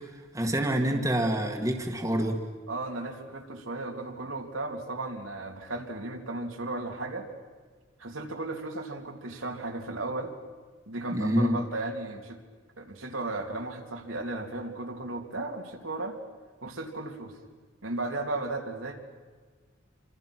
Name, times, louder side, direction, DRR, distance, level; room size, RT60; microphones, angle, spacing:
voice 1, 0.3-2.4 11.1-11.6, equal, 15° right, 3 dB, 1.8 m, -26 dB
voice 2, 2.7-7.3 8.0-10.3 10.9-12.4 12.8-16.2 16.6-17.4 17.8-19.0, right 2 dB, 80° right, 2 dB, 3.0 m, -35 dB
28.5 x 25.0 x 6.2 m, 1.5 s
head